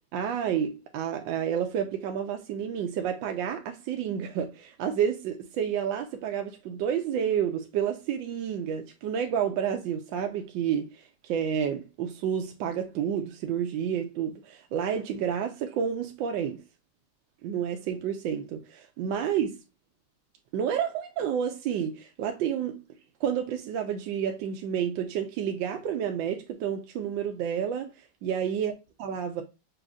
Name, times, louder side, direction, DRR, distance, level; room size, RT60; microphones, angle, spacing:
voice 1, 0.1-16.6 17.4-19.6 20.5-22.8 23.2-27.9 28.2-28.7 29.0-29.4, right 8 dB, 75° right, 1.2 m, -30 dB
6.1 x 2.6 x 2.4 m
omnidirectional pair, 2.3 m